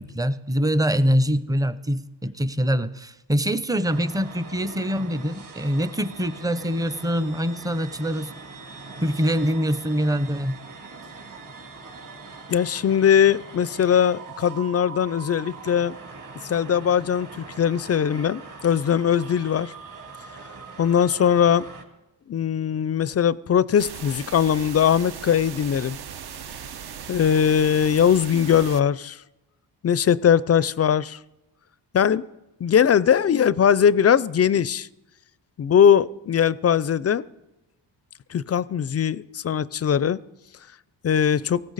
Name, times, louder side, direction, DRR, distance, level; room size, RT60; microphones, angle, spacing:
voice 1, 0.0-8.3 9.0-10.5, equal, 10° right, 14 dB, 0.6 m, -24 dB
sound 1, 3.8-21.8, right 4 dB, 45° right, 2.6 m, -42 dB
voice 2, 12.5-15.9 16.4-19.7 20.8-21.7 22.3-26.0 27.1-29.2 29.8-31.2 31.9-32.2 32.6-34.9 35.6-37.3 38.3-40.2 41.0-41.6, left 8 dB, 35° left, 19 dB, 0.4 m, -20 dB
sound 2, 23.8-28.8, right 8 dB, 60° right, 0.8 m, -38 dB
18.5 x 16.0 x 4.0 m, 0.96 s
cardioid pair, 80°, 43 cm